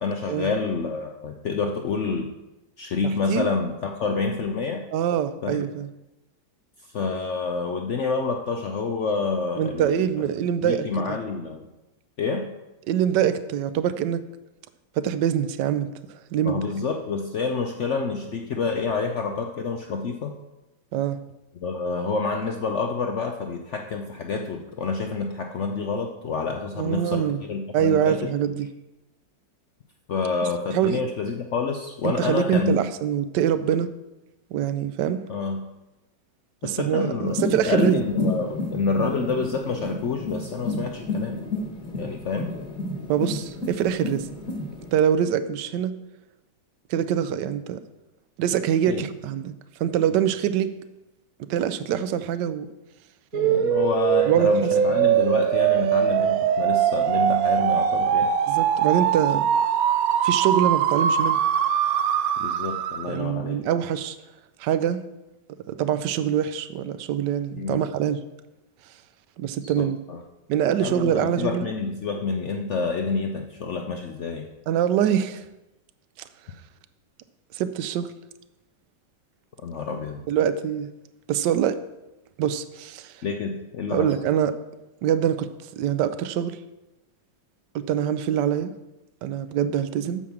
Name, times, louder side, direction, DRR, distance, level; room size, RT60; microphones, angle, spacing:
voice 1, 0.0-2.3 2.8-4.8 5.4-5.6 6.9-10.3 10.6-11.7 12.2-12.4 16.4-20.3 21.5-28.2 30.1-32.8 35.3-35.6 36.6-37.4 37.6-41.4 41.9-42.5 48.9-49.0 53.3-58.3 62.4-63.6 67.6-67.8 69.6-70.2 70.8-74.5 79.6-80.2 83.2-84.1, left 4 dB, 90° left, 4 dB, 0.6 m, -28 dB
voice 2, 4.9-5.9 9.6-10.9 12.9-14.2 15.0-15.9 16.3-16.6 20.9-21.2 26.8-27.4 27.7-28.7 30.7-31.0 32.0-33.9 34.5-35.2 36.6-37.9 43.1-44.3 44.9-45.9 46.9-47.8 48.4-49.5 49.8-50.7 51.5-52.7 54.3-54.5 54.9-55.1 58.5-59.5 60.2-61.4 63.1-64.2 64.6-65.0 65.7-68.2 69.4-70.0 70.5-71.7 74.7-75.4 77.5-78.1 80.3-80.9 81.3-81.8 82.4-83.1 83.9-84.5 85.0-85.5 85.8-86.6 87.7-88.7 89.2-90.2, right 9 dB, 70° right, 13 dB, 1.2 m, -24 dB
sound 1, 37.3-44.9, left 2 dB, 50° left, 1.8 m, -31 dB
sound 2, 53.3-63.2, right 9 dB, 85° right, 0.7 m, -22 dB
8.6 x 7.1 x 5.9 m, 1.0 s
omnidirectional pair, 2.1 m